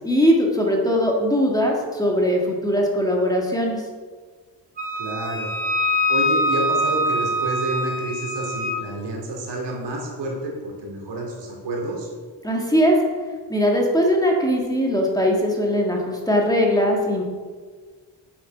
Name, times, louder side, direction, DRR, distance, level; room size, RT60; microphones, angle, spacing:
voice 1, 0.0-3.8 12.4-13.0 13.5-17.2, equal, 10° left, -1 dB, 1.6 m, -20 dB
Wind instrument woodwind instrument, 4.8-8.8, equal, 20° right, 1.8 m, -24 dB
voice 2, 5.0-5.5 6.1-12.1, right 1 dB, 70° right, -1 dB, 2.7 m, -29 dB
8.4 x 6.4 x 6.0 m, 1.5 s
cardioid pair, 115°, 43 cm